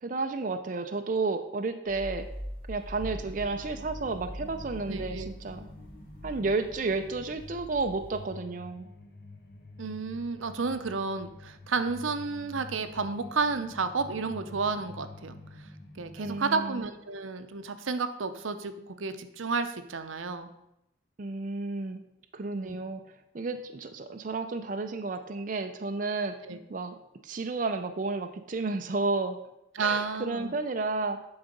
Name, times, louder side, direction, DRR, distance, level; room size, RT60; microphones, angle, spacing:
voice 1, 0.0-2.3 2.7-5.7 6.2-8.9 16.2-16.8 21.2-22.0 22.3-23.0 23.3-26.3 26.7-27.0 27.2-29.4 29.8-31.2, right 3 dB, 40° right, 7 dB, 0.4 m, -32 dB
sound 1, 1.9-8.3, equal, 30° left, 2.8 m, -43 dB
sound 2, 3.0-16.5, left 2 dB, 50° left, 1.0 m, -48 dB
voice 2, 4.9-5.3 9.8-15.4 16.0-20.5 22.5-22.8 26.5-26.6 29.8-30.5, right 4 dB, 85° right, 9 dB, 0.7 m, -31 dB
10.5 x 4.0 x 5.2 m, 0.86 s
head